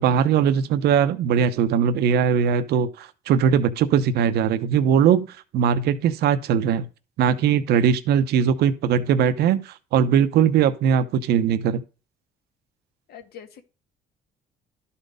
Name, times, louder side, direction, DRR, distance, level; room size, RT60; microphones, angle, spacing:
voice 1, 0.0-6.9 7.2-11.8, right 8 dB, 70° right, 0.8 m, -20 dB
voice 2, 7.3-7.6 13.1-13.6, left 8 dB, 70° left, 1.5 m, -45 dB
12.0 x 4.2 x 5.0 m
cardioid pair, 110°, 17 cm